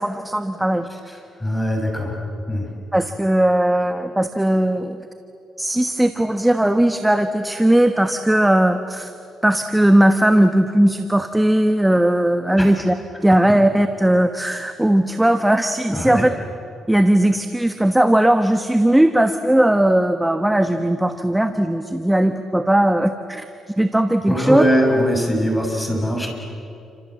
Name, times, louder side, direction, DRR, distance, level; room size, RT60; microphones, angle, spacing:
voice 1, 0.0-0.9 2.9-5.0 5.6-9.1 9.4-12.9 13.2-16.3 16.9-23.4 23.8-24.6, right 1 dB, 5° right, 8 dB, 1.3 m, -18 dB
voice 2, 1.1-2.1 2.5-2.7 12.6-12.7 15.9-16.2 24.3-26.3, equal, 10° left, 2 dB, 7.1 m, -21 dB
29.5 x 26.0 x 7.7 m, 2.8 s
cardioid pair, 90°, 0 cm